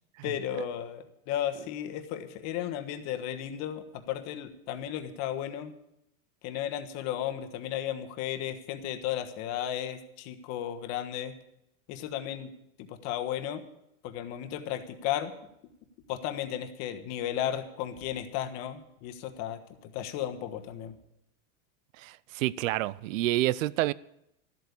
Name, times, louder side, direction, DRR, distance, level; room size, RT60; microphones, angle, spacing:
voice 1, 0.2-5.7 6.4-11.3 11.9-12.5 12.8-13.6 14.0-15.3 16.1-20.9, left 11 dB, 40° left, 7 dB, 1.4 m, -34 dB
voice 2, 22.0-23.9, right 16 dB, 70° right, 21 dB, 0.6 m, -28 dB
13.0 x 8.1 x 8.5 m, 0.82 s
supercardioid pair, 150°, 40 cm